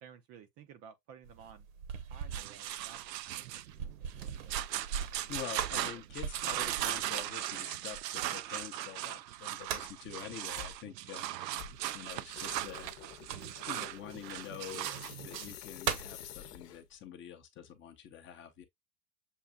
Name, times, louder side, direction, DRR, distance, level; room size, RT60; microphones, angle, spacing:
voice 1, 0.0-1.7 2.1-3.0 3.3-4.6 5.1-5.3 5.6-5.7 5.9-6.0, right 7 dB, 30° right, 0.5 m, -55 dB
sound 1, 1.2-8.6 9.3-10.1 12.5-13.8 14.7-14.9 15.4-16.2, right 7 dB, 55° right, 1.1 m, -41 dB
sound 2, 2.3-15.5, right 13 dB, 85° right, 0.6 m, -38 dB
voice 2, 5.3-12.9 13.6-18.6, left 10 dB, 25° left, 0.6 m, -46 dB
sound 3, 10.5-10.8 11.5-17.0, left 10 dB, 70° left, 0.9 m, -50 dB
7.2 x 2.5 x 2.2 m
hypercardioid pair, 115°, 49 cm